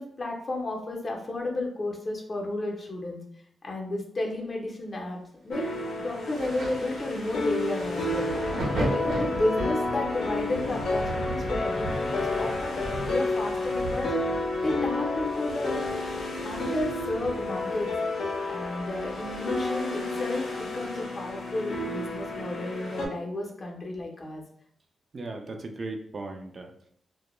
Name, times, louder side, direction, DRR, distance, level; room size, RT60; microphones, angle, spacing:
voice 1, 0.0-3.2 3.6-5.6 6.0-14.1 14.6-15.8 16.4-18.2 18.5-24.4, left 2 dB, 40° left, 0 dB, 0.6 m, -32 dB
sound 1, 5.5-23.1, left 2 dB, 85° left, 0.5 m, -31 dB
Thunder, 6.4-19.7 20.0-21.3 22.1-22.3, right 1 dB, 90° right, 0.8 m, -37 dB
voice 2, 25.1-26.9, right 2 dB, 45° right, 3 dB, 0.3 m, -37 dB
2.2 x 2.1 x 3.0 m, 0.66 s
wide cardioid pair, 105°, 0 cm